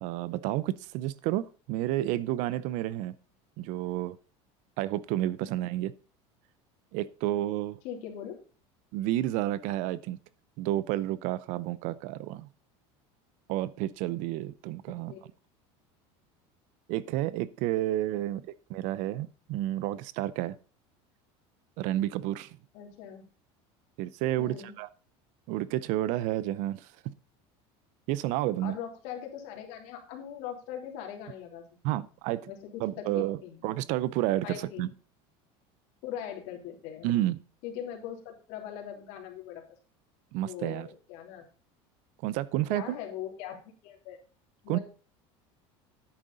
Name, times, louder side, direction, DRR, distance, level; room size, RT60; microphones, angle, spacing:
voice 1, 0.0-3.1 3.6-4.2 4.8-5.9 6.9-7.8 8.9-10.2 10.6-12.5 13.5-15.1 16.9-20.6 21.8-22.6 24.0-24.9 25.5-27.1 28.1-28.8 31.8-32.5 32.8-33.4 33.6-34.9 37.0-37.4 40.3-40.9 42.2-43.0 44.7-44.8, right 14 dB, 60° right, 18 dB, 0.6 m, -30 dB
voice 2, 7.8-8.4 14.9-15.2 18.1-18.3 22.7-23.3 24.4-24.7 28.6-31.6 32.5-33.6 34.4-34.9 36.0-37.1 37.6-39.6 40.4-41.4 42.7-44.2 44.6-44.8, left 9 dB, 65° left, 2 dB, 3.3 m, -41 dB
10.5 x 8.6 x 3.9 m, 0.37 s
cardioid pair, 140°, 14 cm